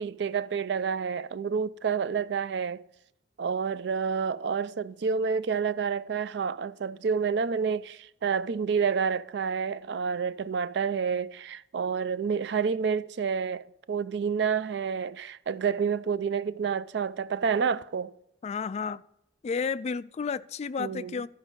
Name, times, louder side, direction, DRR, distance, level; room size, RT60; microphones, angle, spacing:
voice 1, 0.0-2.8 3.4-18.1 20.8-21.2, right 6 dB, 70° right, 0.4 m, -29 dB
voice 2, 18.4-19.0 19.4-21.3, left 5 dB, 40° left, 0.3 m, -32 dB
13.0 x 5.1 x 5.3 m
head